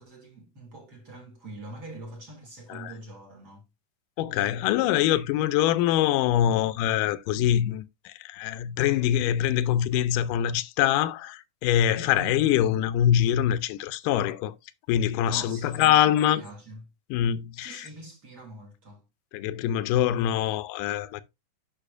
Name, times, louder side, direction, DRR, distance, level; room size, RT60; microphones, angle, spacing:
voice 1, 0.0-3.7 11.9-12.4 15.3-16.9 17.6-19.0, right 2 dB, 40° right, 1.6 m, -43 dB
voice 2, 4.2-14.5 14.9-16.4 17.1-17.9 19.3-21.2, left 11 dB, 80° left, 2.0 m, -24 dB
10.0 x 5.5 x 2.5 m
omnidirectional pair, 4.1 m